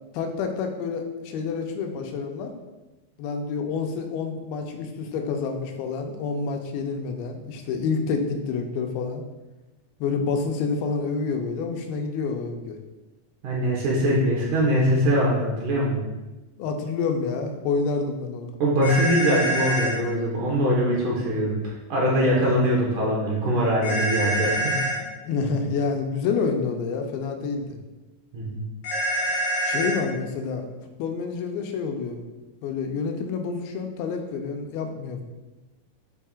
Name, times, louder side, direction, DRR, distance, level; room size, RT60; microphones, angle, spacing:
voice 1, 0.1-2.5 3.2-9.2 10.0-12.8 16.6-18.6 25.2-27.8 29.6-30.7 31.0-32.2 32.6-35.2, left 4 dB, 85° left, 4 dB, 2.5 m, -28 dB
voice 2, 13.4-16.0 18.6-24.7 28.3-28.6, equal, 65° right, -4 dB, 2.4 m, -22 dB
sound 1, 18.8-20.0 23.8-25.0 28.8-30.0, right 1 dB, 55° left, 3.0 m, -25 dB
7.2 x 5.5 x 2.4 m, 1.1 s
omnidirectional pair, 4.3 m